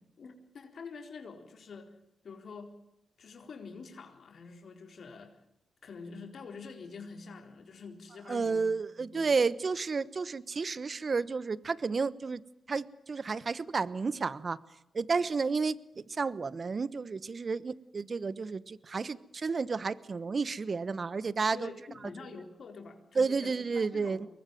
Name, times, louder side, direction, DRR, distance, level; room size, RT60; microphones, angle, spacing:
voice 1, 0.2-2.0 2.2-2.8 3.2-5.4 5.8-8.7 9.0-9.3 21.5-24.2, left 4 dB, 65° left, 5 dB, 4.1 m, -46 dB
voice 2, 8.3-12.4 12.7-14.6 14.9-21.7 23.1-24.3, right 4 dB, 50° right, 18 dB, 1.1 m, -31 dB
24.0 x 20.0 x 9.2 m, 0.83 s
supercardioid pair, 45°, 0 cm